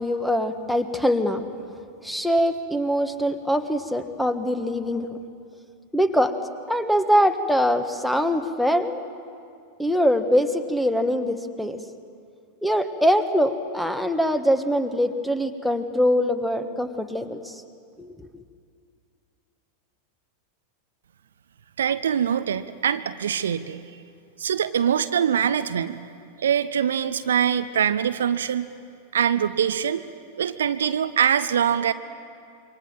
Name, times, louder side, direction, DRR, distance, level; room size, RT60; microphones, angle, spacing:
voice 1, 0.0-1.4 2.0-5.2 5.9-6.3 6.7-9.0 9.8-11.8 12.6-17.6 18.0-18.1, equal, ahead, 9 dB, 1.5 m, -23 dB
voice 2, 21.8-23.8 24.4-26.0 26.4-28.7 29.1-30.0 30.4-31.9, right 8 dB, 65° right, 12 dB, 0.7 m, -23 dB
26.5 x 23.5 x 7.6 m, 2.3 s
figure-of-eight pair, 90°, 0 cm